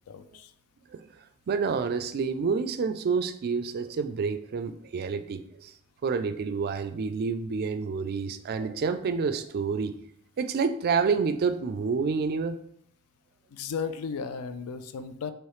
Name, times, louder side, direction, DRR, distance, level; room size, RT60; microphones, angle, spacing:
voice 1, 0.1-0.5 13.5-15.3, left 6 dB, 75° left, 11 dB, 0.4 m, -35 dB
voice 2, 1.5-5.7 6.0-9.9 10.4-12.6, right 5 dB, 45° right, 10 dB, 0.3 m, -28 dB
4.7 x 3.1 x 3.1 m, 0.68 s
head